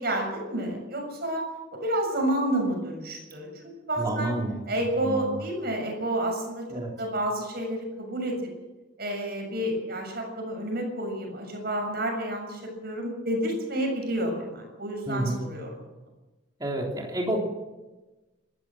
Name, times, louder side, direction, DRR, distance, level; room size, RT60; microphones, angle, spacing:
voice 1, 0.0-1.4 1.7-4.3 4.7-6.7 7.0-8.4 9.0-15.7, right 1 dB, 50° right, 3 dB, 6.9 m, -30 dB
voice 2, 4.0-4.6 5.0-5.4 6.7-7.0 15.1-15.4 16.6-17.4, right 1 dB, 20° right, -1 dB, 3.4 m, -29 dB
27.5 x 13.5 x 7.7 m, 1.1 s
head